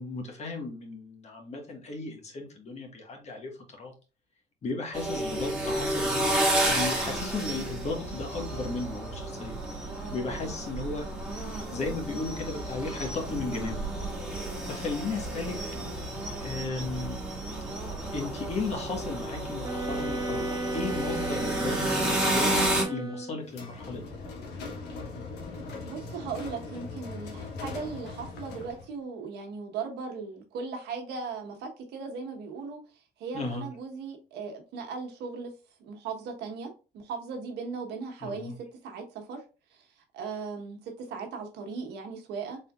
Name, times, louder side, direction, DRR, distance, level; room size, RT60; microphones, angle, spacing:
voice 1, 0.0-3.5 3.8-3.9 4.6-11.1 11.7-13.8 14.6-15.6 16.4-17.2 18.1-24.0 33.3-33.6 38.2-38.5, left 3 dB, 40° left, 1.3 m, -35 dB
sound 1, 4.9-22.8, right 1 dB, 5° right, 1.6 m, -31 dB
voice 2, 15.2-15.9 25.9-32.8 33.2-35.5 35.8-39.4 39.7-39.8 40.1-42.6, right 5 dB, 80° right, 1.1 m, -38 dB
sound 2, 19.6-23.5, right 2 dB, 20° right, 0.8 m, -34 dB
sound 3, 23.5-28.9, left 3 dB, 80° left, 1.1 m, -40 dB
4.2 x 3.6 x 2.3 m
cardioid pair, 110°, 17 cm